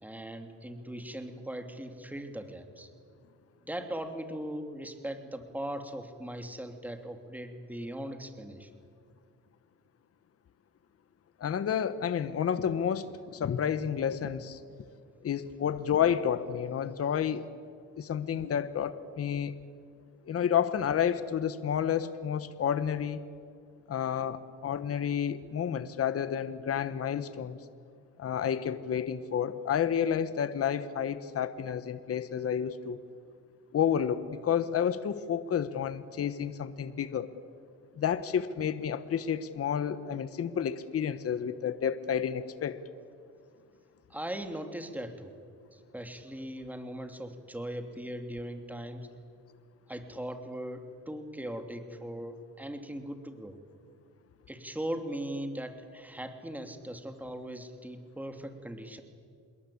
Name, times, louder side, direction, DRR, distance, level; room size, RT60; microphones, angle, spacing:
voice 1, 0.0-2.9 3.7-8.7 44.1-45.3 45.7-49.1 49.9-53.6 54.5-59.0, right 1 dB, 5° right, 6 dB, 2.7 m, -39 dB
voice 2, 11.4-14.6 15.2-17.5 18.0-19.5 20.3-23.2 23.9-27.6 28.2-33.0 33.7-37.3 38.0-42.8, left 8 dB, 50° left, 12 dB, 1.2 m, -30 dB
27.0 x 21.5 x 8.6 m, 2.3 s
cardioid pair, 90°, 30 cm